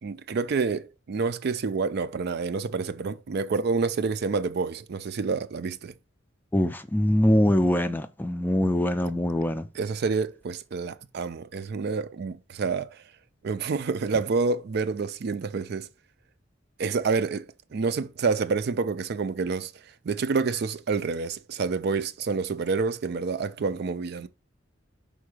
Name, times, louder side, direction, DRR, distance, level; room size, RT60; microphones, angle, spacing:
voice 1, 0.0-5.9 9.8-13.0 13.4-15.9 16.8-17.5 17.7-19.7 20.0-24.3, right 4 dB, 55° right, 0.4 m, -28 dB
voice 2, 6.5-9.7, left 1 dB, 10° left, 0.4 m, -23 dB
5.3 x 3.8 x 4.8 m
head